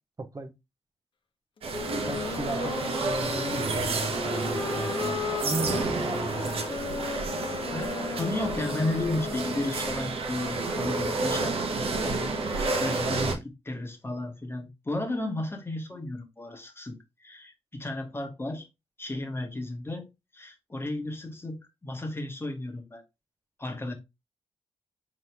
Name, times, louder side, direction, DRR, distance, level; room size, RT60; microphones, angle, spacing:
voice 1, 0.2-0.5 2.0-6.7, right 2 dB, 35° right, 0.8 m, -35 dB
sound 1, 1.6-13.3, right 3 dB, 65° right, 0.9 m, -30 dB
Wind instrument woodwind instrument, 1.7-10.0, left 6 dB, 55° left, 0.8 m, -36 dB
voice 2, 7.7-17.0 17.2-18.7 19.0-23.0 23.6-23.9, left 1 dB, 25° left, 1.3 m, -34 dB
4.0 x 3.0 x 3.3 m
supercardioid pair, 50°, 10 cm